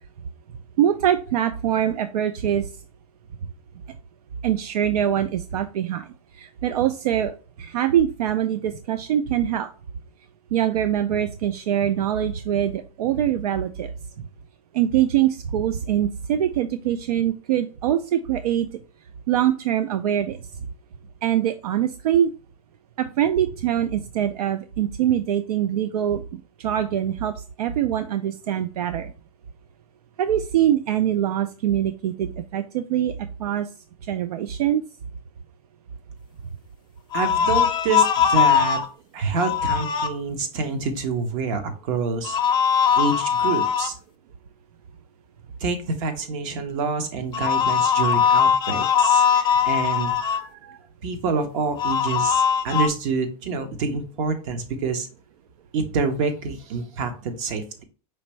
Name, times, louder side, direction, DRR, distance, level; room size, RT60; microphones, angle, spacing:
voice 1, 0.8-2.7 4.4-6.1 6.4-7.3 7.6-9.7 10.5-13.9 14.7-18.8 19.3-20.4 21.2-22.3 23.0-29.1 30.2-33.1 33.4-33.7 34.1-34.8, right 10 dB, 85° right, 11 dB, 0.4 m, -23 dB
sound 1, 37.1-38.9 39.3-40.1 42.2-43.9 47.3-50.4 51.8-52.9, left 7 dB, 25° left, 0.6 m, -20 dB
voice 2, 37.1-38.8 39.1-42.4 43.0-43.9 45.6-55.1 55.7-57.8, right 4 dB, 55° right, 7 dB, 1.1 m, -27 dB
5.0 x 3.4 x 3.1 m, 0.37 s
hypercardioid pair, 125°, 19 cm